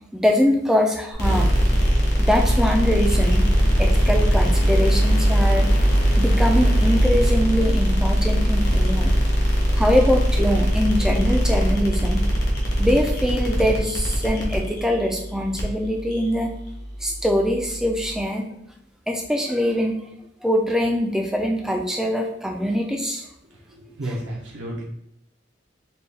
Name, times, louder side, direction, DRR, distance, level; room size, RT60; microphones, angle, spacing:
voice 1, 0.1-1.6 2.2-3.5 3.8-5.7 6.2-9.1 9.8-12.3 12.8-16.5 17.0-18.5 19.1-19.9 20.4-23.3, equal, 5° right, 2 dB, 0.3 m, -23 dB
sound 1, 1.1-18.2, equal, 55° left, 0.9 m, -21 dB
voice 2, 23.7-24.8, right 1 dB, 70° right, -3 dB, 0.7 m, -32 dB
4.2 x 2.3 x 3.4 m, 0.80 s
head